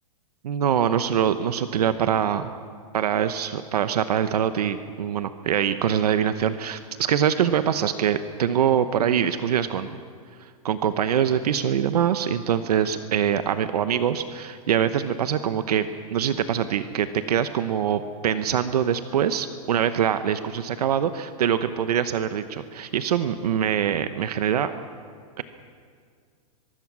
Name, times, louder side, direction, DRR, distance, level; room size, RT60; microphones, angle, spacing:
voice 1, 0.4-2.5 2.9-9.9 10.4-24.7 25.4-25.5, right 9 dB, 80° right, 10 dB, 1.0 m, -24 dB
23.0 x 23.0 x 6.3 m, 2.1 s
supercardioid pair, 165°, 20 cm